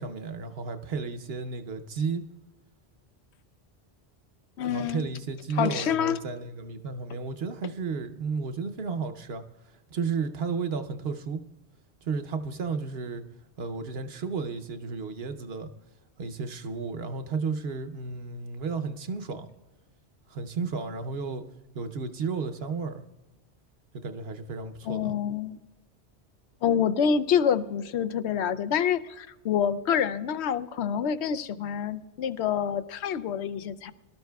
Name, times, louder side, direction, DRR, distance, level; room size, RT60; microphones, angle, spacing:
voice 1, 0.0-2.2 4.7-9.4 9.9-11.4 12.0-13.2 13.6-15.7 16.2-19.5 20.3-21.4 21.7-23.0 24.0-25.1, right 5 dB, 65° right, 1.0 m, -33 dB
voice 2, 4.6-5.1 5.5-6.2 24.8-25.6 26.6-33.9, left 8 dB, 80° left, 0.9 m, -27 dB
23.5 x 12.5 x 2.3 m
omnidirectional pair, 1.1 m